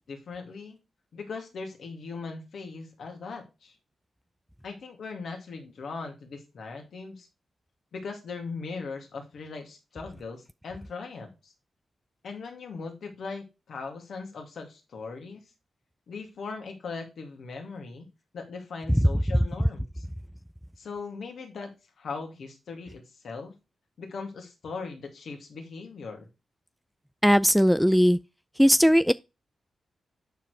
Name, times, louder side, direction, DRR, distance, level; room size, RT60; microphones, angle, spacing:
voice 1, 0.1-0.8 1.1-3.7 4.6-7.3 7.9-11.5 12.2-15.4 16.1-18.1 18.3-20.0 20.8-23.5 24.0-26.3, left 4 dB, 70° left, 2.3 m, -39 dB
voice 2, 27.2-28.2 28.6-29.1, equal, ahead, 0.3 m, -19 dB
9.2 x 4.6 x 4.9 m
supercardioid pair, 40°, 0 cm